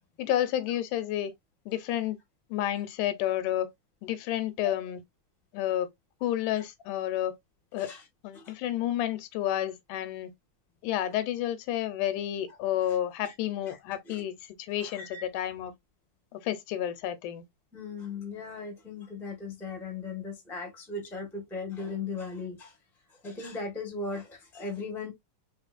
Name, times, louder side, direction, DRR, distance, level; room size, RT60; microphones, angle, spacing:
voice 1, 0.2-1.3 1.7-2.2 2.5-3.7 4.0-5.0 5.5-5.9 6.2-7.4 7.7-7.9 8.2-10.3 10.8-15.7 16.3-17.4, left 12 dB, 85° left, 2.2 m, -30 dB
voice 2, 14.8-15.3 17.7-22.8 23.1-25.1, left 4 dB, ahead, 0.6 m, -38 dB
4.6 x 3.5 x 2.5 m
omnidirectional pair, 3.5 m